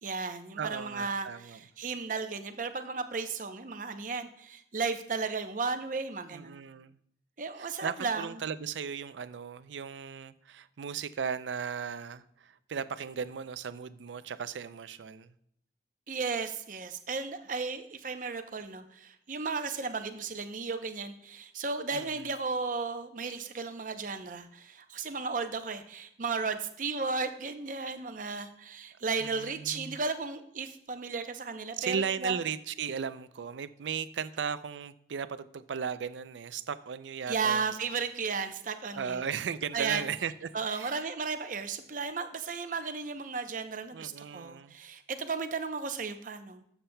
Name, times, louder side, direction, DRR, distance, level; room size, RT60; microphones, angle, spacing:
voice 1, 0.0-6.6 7.4-8.3 16.1-32.4 37.3-39.2 39.7-40.0 40.5-46.6, right 4 dB, 45° right, 8 dB, 0.6 m, -34 dB
voice 2, 0.6-1.6 6.3-7.0 7.6-15.3 21.9-22.3 29.2-30.0 31.8-37.7 38.9-41.0 43.9-44.7, right 7 dB, 85° right, 14 dB, 0.4 m, -36 dB
12.5 x 7.2 x 2.2 m, 0.70 s
head